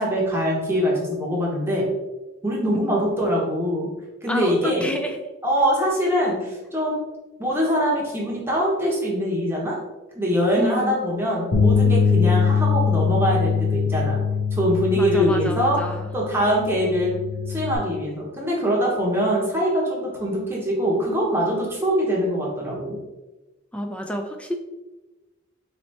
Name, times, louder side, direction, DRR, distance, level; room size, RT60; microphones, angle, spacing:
voice 1, 0.0-1.9 2.4-3.9 4.2-4.9 5.4-7.0 7.4-9.8 10.1-14.2 14.6-15.8 16.1-17.1 17.5-23.0, equal, 10° right, -4 dB, 0.8 m, -23 dB
voice 2, 4.3-5.2 10.6-11.0 15.0-16.1 23.7-24.5, equal, 5° left, 4 dB, 0.3 m, -28 dB
Bass guitar, 11.5-17.8, left 6 dB, 70° left, 0.8 m, -22 dB
4.1 x 3.2 x 2.7 m, 1.1 s
head